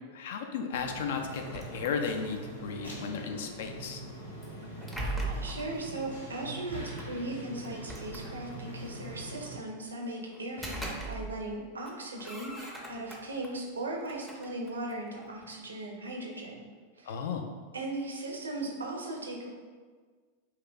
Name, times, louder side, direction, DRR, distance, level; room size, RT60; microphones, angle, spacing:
voice 1, 0.1-4.0 17.1-17.4, left 6 dB, 55° left, 5 dB, 0.3 m, -34 dB
sound 1, 0.7-9.6, right 1 dB, 85° left, 0.7 m, -43 dB
sound 2, 1.3-2.5 4.4-5.8 7.0-7.1 7.6-8.7 10.3-11.5 11.8-13.5 14.0-15.6, right 2 dB, ahead, 0.5 m, -40 dB
voice 2, 5.3-16.7 17.0-17.2 17.7-19.5, right 2 dB, 75° right, 1 dB, 0.5 m, -38 dB
2.7 x 2.3 x 3.8 m, 1.5 s
figure-of-eight pair, 90°, 0 cm